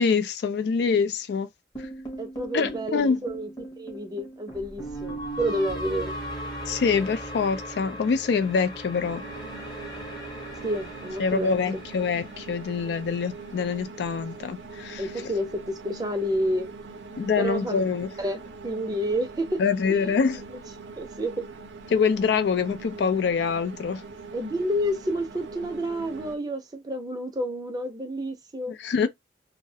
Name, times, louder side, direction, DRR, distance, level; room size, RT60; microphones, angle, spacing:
voice 1, 0.0-1.5 2.5-3.2 6.7-9.2 11.2-15.3 17.2-18.1 19.6-20.4 21.9-24.0 28.7-29.1, left 5 dB, 65° left, 0.3 m, -25 dB
sound 1, 1.8-14.0, right 1 dB, 25° left, 0.7 m, -38 dB
voice 2, 2.2-3.5 3.8-6.1 10.6-11.6 15.0-16.7 17.4-17.8 18.2-19.6 19.9-20.1 20.5-20.6 21.0-21.4 24.3-28.7, equal, 20° right, 0.5 m, -29 dB
sound 2, 9.0-26.4, right 4 dB, 85° right, 0.5 m, -42 dB
2.3 x 2.0 x 2.6 m
head